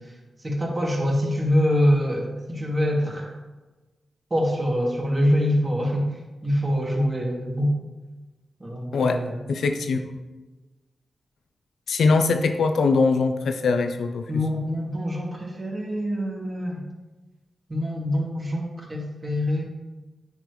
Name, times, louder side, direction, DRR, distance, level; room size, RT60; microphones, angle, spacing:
voice 1, 0.4-3.3 4.3-6.1 6.4-7.7 8.6-9.4 14.3-16.8 17.7-19.6, equal, 35° right, -3 dB, 2.5 m, -24 dB
voice 2, 9.5-10.0 11.9-14.4, left 4 dB, 85° left, 7 dB, 0.6 m, -22 dB
9.5 x 5.0 x 3.2 m, 1.2 s
cardioid pair, 50°, 0 cm